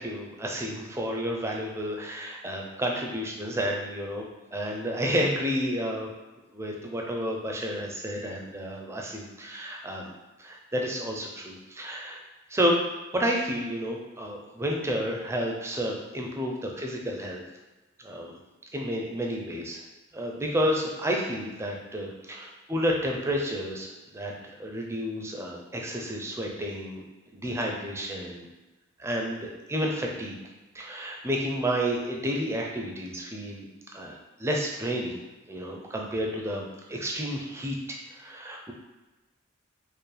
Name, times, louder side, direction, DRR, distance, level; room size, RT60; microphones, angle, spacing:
voice 1, 0.0-4.3 4.5-6.1 6.5-10.1 10.4-12.2 12.5-12.8 13.1-17.4 18.0-18.3 18.7-19.8 20.1-23.9 24.1-24.3 24.6-27.0 27.3-28.5 29.0-30.4 30.7-33.7 33.9-35.2 35.5-38.7, equal, 15° right, 0 dB, 0.4 m, -30 dB
4.5 x 2.1 x 3.2 m, 1.1 s
head